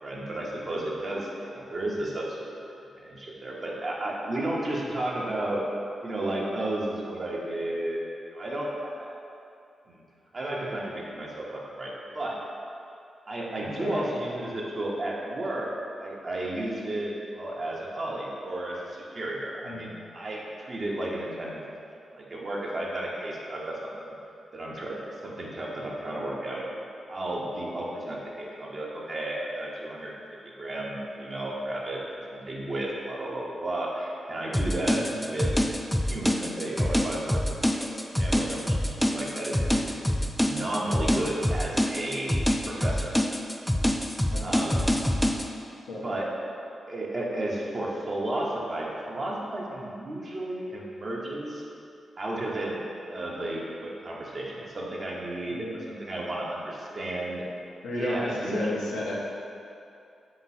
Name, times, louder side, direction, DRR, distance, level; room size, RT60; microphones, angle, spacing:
voice 1, 0.0-2.6 3.0-5.6 6.0-8.0 8.3-9.1 9.9-10.0 10.3-12.4 13.3-15.7 16.0-21.6 22.1-24.2 24.5-25.0 25.2-26.6 27.1-30.1 30.6-32.0 32.3-35.5 36.1-37.4 37.7-37.9 38.2-40.0 40.4-42.4 42.6-43.1 44.4-44.9 46.0-46.3 46.9-51.6 52.2-52.8 53.1-57.5 57.9-58.8, right 1 dB, 50° right, -4 dB, 0.8 m, -33 dB
voice 2, 13.8-14.1 19.6-19.9 34.9-35.1 44.3-44.7 45.9-46.0 55.5-55.8 57.8-59.1, left 1 dB, 90° left, -6 dB, 0.7 m, -33 dB
sound 1, 34.5-45.5, equal, 5° left, 0.3 m, -26 dB
3.7 x 2.9 x 4.1 m, 2.6 s
supercardioid pair, 40°, 0 cm